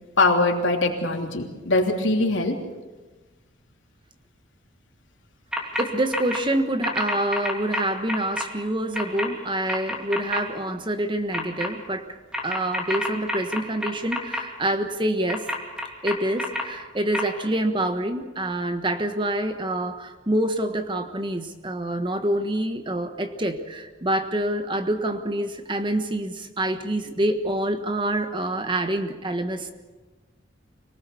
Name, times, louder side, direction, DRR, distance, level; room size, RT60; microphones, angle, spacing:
voice 1, 0.2-2.5, left 2 dB, 80° left, 2 dB, 3.1 m, -22 dB
sound 1, 5.5-5.8 6.1-6.4 6.8-8.4 8.9-9.3 9.7-10.4 11.3-11.7 12.3-14.4 15.3-16.6 17.1-17.2, left 1 dB, 5° right, 3.0 m, -27 dB
voice 2, 5.8-12.2 12.4-15.5 16.0-29.7, right 1 dB, 25° right, 7 dB, 1.3 m, -26 dB
26.0 x 19.0 x 7.0 m, 1.3 s
head